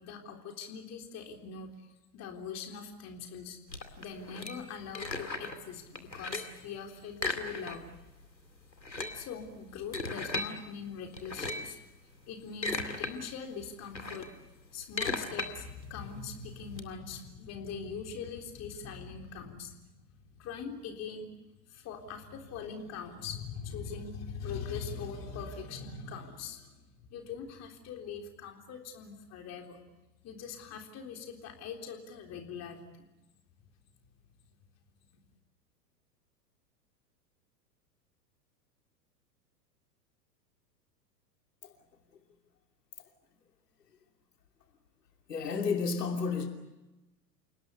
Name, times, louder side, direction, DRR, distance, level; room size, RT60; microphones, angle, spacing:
voice 1, 0.0-1.7 2.1-3.6 4.0-7.8 9.1-11.8 12.3-14.3 14.7-19.7 20.4-21.3 21.7-29.8 30.2-32.8, left 6 dB, 30° left, 3.8 m, -42 dB
sound 1, 3.7-5.6 6.0-6.6 7.1-8.0 8.3-8.4 8.7-10.5 11.1-11.8 12.3-13.1 13.5-16.8, left 2 dB, 90° left, 2.4 m, -37 dB
voice 2, 45.3-46.5, left 5 dB, 70° left, 3.0 m, -31 dB
29.0 x 18.5 x 8.2 m
figure-of-eight pair, 100°, 50 cm